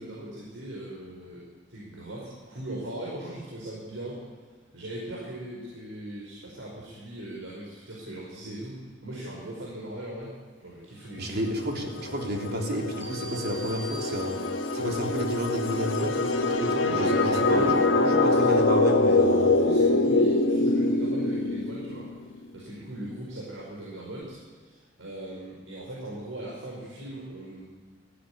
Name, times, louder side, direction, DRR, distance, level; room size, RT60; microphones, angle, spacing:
voice 1, 0.0-1.4 1.7-4.2 4.7-11.6 16.8-18.6 19.4-22.1 22.5-27.6, right 1 dB, 85° right, -4 dB, 4.9 m, -38 dB
voice 2, 11.2-14.4 14.7-17.7 18.2-19.6, equal, 55° right, 2 dB, 3.3 m, -31 dB
sound 1, 11.6-22.1, left 2 dB, 85° left, 1.6 m, -24 dB
sound 2, 13.0-14.8, right 5 dB, 10° right, 5.7 m, -44 dB
18.5 x 14.5 x 9.9 m, 1.4 s
head